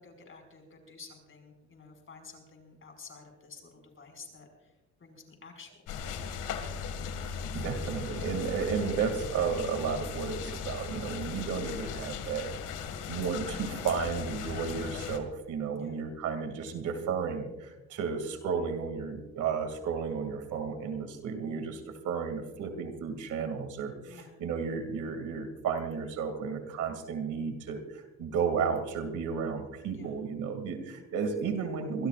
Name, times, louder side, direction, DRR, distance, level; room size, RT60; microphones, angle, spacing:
voice 1, 0.0-6.2 12.9-13.2 15.7-16.0 24.0-24.4 29.9-30.2, left 4 dB, 45° left, 4 dB, 5.5 m, -51 dB
sound 1, 5.9-15.2, left 6 dB, 90° left, 2.1 m, -37 dB
voice 2, 7.3-12.5 13.1-32.1, right 6 dB, 80° right, 7 dB, 2.5 m, -33 dB
24.5 x 19.5 x 2.5 m, 1.0 s
cardioid pair, 90°, 30 cm